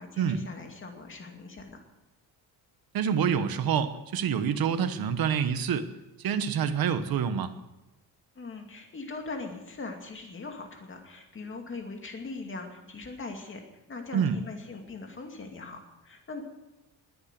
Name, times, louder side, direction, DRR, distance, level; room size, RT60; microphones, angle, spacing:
voice 1, 0.0-1.8 8.3-13.6 13.9-16.4, left 3 dB, 25° left, 3 dB, 2.4 m, -41 dB
voice 2, 2.9-5.9 6.2-7.5 14.1-14.4, right 7 dB, 50° right, 11 dB, 1.2 m, -27 dB
21.0 x 8.8 x 6.7 m, 1.0 s
cardioid pair, 165°, 45 cm